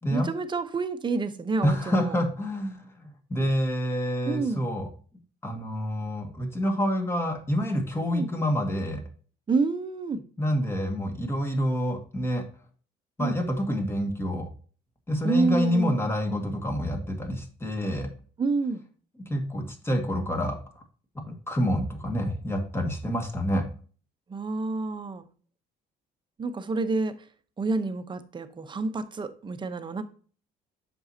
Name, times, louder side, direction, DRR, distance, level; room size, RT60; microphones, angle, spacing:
voice 1, 0.1-2.2 4.3-4.7 8.1-8.3 9.5-10.2 13.2-13.4 15.2-16.0 18.4-18.9 24.3-25.3 26.4-27.2 27.6-30.0, right 3 dB, 30° right, 0.9 m, -28 dB
voice 2, 1.6-4.9 5.4-9.0 10.4-12.4 13.2-14.5 15.1-18.1 19.2-20.6 21.5-23.7, equal, 15° left, 2.0 m, -27 dB
7.7 x 6.3 x 2.8 m
cardioid pair, 110°, 17 cm